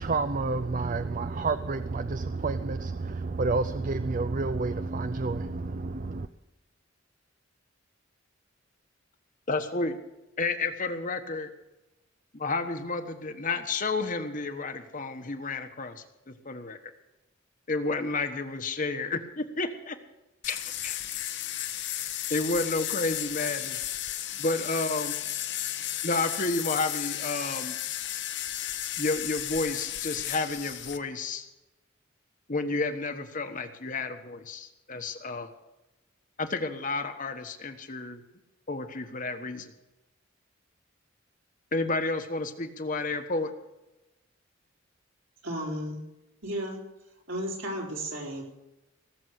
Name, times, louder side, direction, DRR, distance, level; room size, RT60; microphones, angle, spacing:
voice 1, 0.0-6.3, right 3 dB, 40° right, 11 dB, 0.5 m, -29 dB
voice 2, 9.5-10.0 10.4-11.5 12.3-16.8 17.7-20.0 20.5-20.9 22.3-23.8 24.4-25.2 26.0-27.7 29.0-31.4 32.5-35.5 36.4-38.2 38.7-39.7 41.7-43.5, left 3 dB, 40° left, 7 dB, 1.2 m, -31 dB
sound 1, 20.4-31.0, left 12 dB, 60° left, 0.9 m, -34 dB
voice 3, 45.4-46.0 46.4-46.8 47.3-48.4, equal, 75° right, -1 dB, 4.4 m, -33 dB
18.5 x 7.2 x 8.0 m, 0.97 s
head